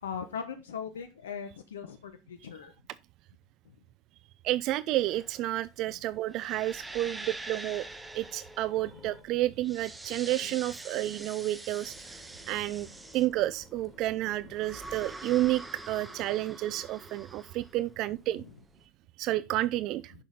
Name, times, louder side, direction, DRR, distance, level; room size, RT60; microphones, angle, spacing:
voice 1, 0.0-2.7, left 7 dB, 80° left, 1.0 m, -39 dB
voice 2, 4.4-7.8 8.1-12.9 13.1-18.4 19.2-20.1, right 15 dB, 55° right, 0.4 m, -30 dB
sound 1, 5.1-18.7, right 2 dB, 15° right, 1.7 m, -45 dB
sound 2, 7.6-10.3 10.7-14.9, equal, 10° left, 4.2 m, -55 dB
10.5 x 6.3 x 3.8 m
hypercardioid pair, 75°, 0 cm